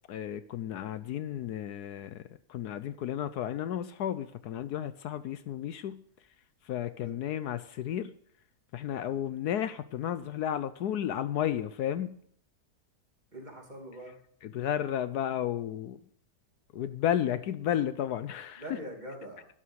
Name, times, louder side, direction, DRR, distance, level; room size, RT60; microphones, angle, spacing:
voice 1, 0.1-6.0 6.6-8.1 8.7-12.2 14.4-16.0 16.7-18.8, left 10 dB, 75° left, 13 dB, 1.2 m, -33 dB
voice 2, 13.3-14.2 18.6-19.5, right 1 dB, 25° right, 0 dB, 2.9 m, -43 dB
12.0 x 11.5 x 6.3 m, 0.64 s
omnidirectional pair, 1.8 m